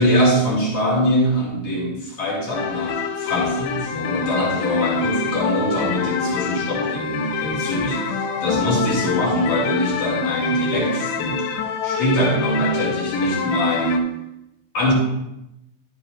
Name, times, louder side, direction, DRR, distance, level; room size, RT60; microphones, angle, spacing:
voice 1, 0.0-11.5 11.8-14.1 14.7-14.9, equal, 40° left, -5 dB, 3.3 m, -22 dB
sound 1, 2.5-14.0, left 7 dB, 80° left, 2.8 m, -27 dB
12.5 x 8.5 x 2.6 m, 0.86 s
omnidirectional pair, 5.5 m